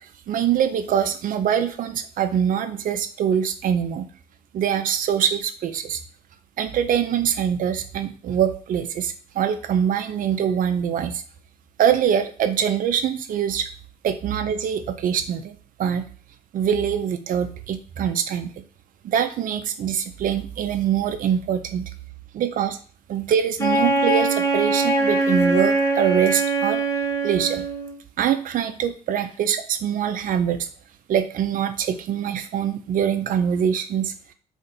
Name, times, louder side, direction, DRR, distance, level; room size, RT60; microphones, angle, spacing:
voice 1, 0.3-4.1 4.5-6.0 6.6-11.2 11.8-13.7 14.0-16.0 16.5-18.6 19.0-21.9 22.3-22.8 23.1-26.8 27.2-27.7 28.2-30.7 31.1-34.1, right 8 dB, 45° right, 10 dB, 0.5 m, -24 dB
Wind instrument woodwind instrument, 23.6-28.0, right 2 dB, 15° left, 1.0 m, -22 dB
2.5 x 2.5 x 4.1 m, 0.40 s
hypercardioid pair, 55°, 20 cm